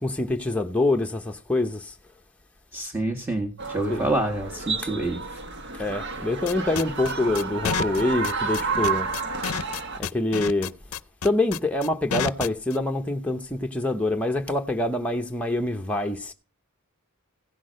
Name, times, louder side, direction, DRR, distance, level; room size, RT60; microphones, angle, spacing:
voice 1, 0.0-1.9 3.9-4.1 5.8-9.1 10.0-10.7 11.2-16.3, left 2 dB, 5° left, 0.9 m, -25 dB
voice 2, 2.7-5.4, right 2 dB, 10° right, 1.7 m, -27 dB
sound 1, 3.6-10.0, right 4 dB, 55° right, 1.7 m, -30 dB
sound 2, 6.5-12.8, left 7 dB, 80° left, 0.6 m, -29 dB
15.5 x 6.2 x 6.4 m
head